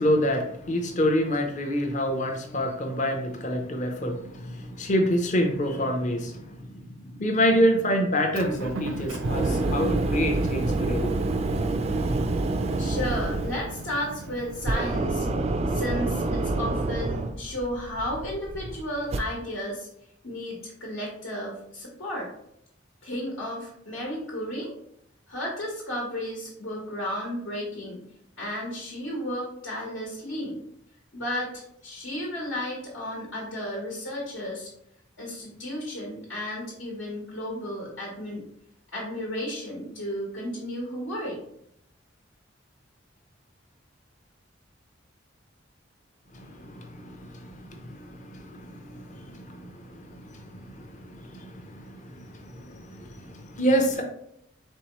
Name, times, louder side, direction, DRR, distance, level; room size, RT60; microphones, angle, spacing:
voice 1, 0.0-11.1 46.3-54.0, equal, 40° left, 0.6 m, -27 dB
Motor vehicle (road) / Engine, 8.3-14.8, right 2 dB, 85° right, 0.6 m, -37 dB
sound 1, 8.8-19.2, right 2 dB, 30° right, 0.3 m, -28 dB
voice 2, 12.8-15.3 15.7-19.9 20.2-22.3 23.0-24.7 25.3-28.0 28.4-30.6 31.1-34.7 35.2-38.5 38.9-41.4, left 1 dB, 80° left, 1.3 m, -33 dB
4.5 x 3.5 x 3.0 m
head